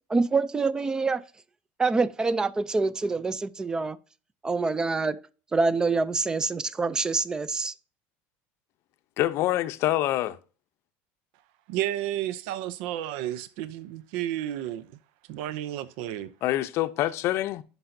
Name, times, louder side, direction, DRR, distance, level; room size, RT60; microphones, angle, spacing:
voice 1, 0.1-1.2 1.8-4.0 4.4-5.2 5.5-7.7, right 3 dB, 10° right, 0.4 m, -26 dB
voice 2, 9.2-10.4 16.4-17.6, left 14 dB, 50° left, 0.6 m, -26 dB
voice 3, 11.7-14.9 15.3-16.3, right 12 dB, 80° right, 0.5 m, -32 dB
11.5 x 5.4 x 2.6 m
cardioid pair, 160°, 6 cm